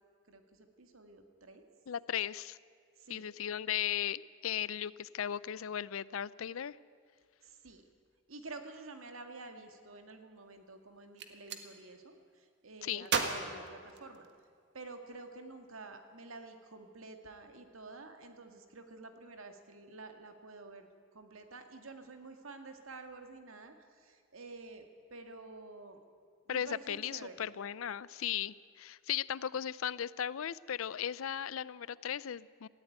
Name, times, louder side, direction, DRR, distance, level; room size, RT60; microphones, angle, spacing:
voice 1, 0.3-1.7 3.0-3.3 7.4-7.9 8.3-14.3 14.7-24.9 25.1-26.0 26.5-27.5, right 3 dB, 85° right, 6 dB, 2.0 m, -50 dB
voice 2, 1.9-2.6 3.1-6.8 12.8-13.1 26.5-32.7, left 9 dB, 80° left, 20 dB, 0.5 m, -37 dB
Gunshot gunfire, 11.0-11.7 13.1-14.5, right 5 dB, 55° right, 1.7 m, -35 dB
18.5 x 15.0 x 9.3 m, 2.2 s
head